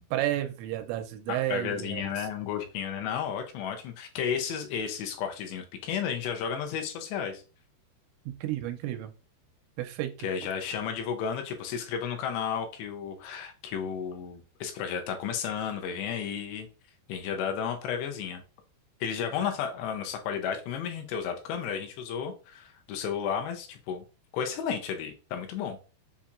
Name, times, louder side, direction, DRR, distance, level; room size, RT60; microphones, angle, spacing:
voice 1, 0.0-2.1 8.3-9.1 9.8-10.3 19.4-19.5, right 14 dB, 85° right, 7 dB, 2.8 m, -32 dB
voice 2, 1.5-7.4 10.2-16.7 17.1-18.4 19.0-24.0 24.3-25.8, left 7 dB, 80° left, 4 dB, 2.8 m, -33 dB
7.1 x 2.8 x 2.4 m, 0.33 s
omnidirectional pair, 5.1 m